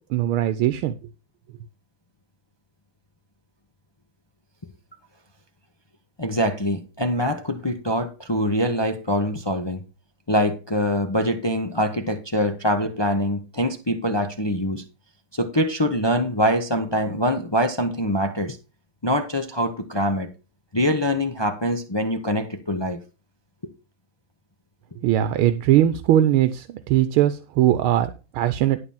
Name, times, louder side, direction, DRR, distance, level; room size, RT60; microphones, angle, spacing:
voice 1, 0.1-0.9 25.0-28.8, right 12 dB, 85° right, 1.6 m, -20 dB
voice 2, 6.2-9.8 10.3-14.8 15.3-18.6 19.0-20.3 20.7-23.0, equal, 45° left, 0.3 m, -24 dB
11.5 x 3.9 x 7.1 m
omnidirectional pair, 2.3 m